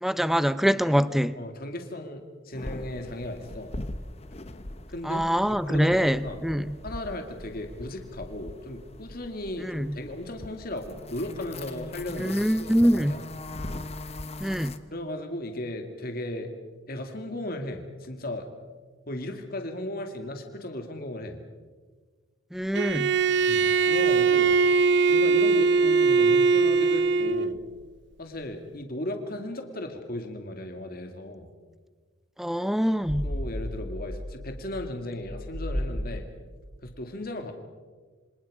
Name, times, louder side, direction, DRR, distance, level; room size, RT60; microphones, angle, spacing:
voice 1, 0.0-1.3 5.1-6.7 9.6-9.9 12.2-13.1 14.4-14.7 22.5-23.1 32.4-33.3, equal, ahead, 14 dB, 0.6 m, -24 dB
voice 2, 1.4-3.7 4.9-5.3 5.6-6.5 6.8-13.3 14.9-16.5 16.9-18.5 19.1-21.4 23.5-24.6 25.1-27.7 28.2-31.5 33.2-36.3 36.8-37.5, left 1 dB, 50° left, 5 dB, 2.3 m, -36 dB
sound 1, 2.5-14.8, left 2 dB, 30° left, 1.1 m, -41 dB
Bowed string instrument, 22.7-27.6, right 4 dB, 60° right, 0.6 m, -21 dB
sound 2, 33.0-36.5, equal, 80° right, 6.9 m, -34 dB
27.0 x 26.0 x 5.0 m, 1.5 s
head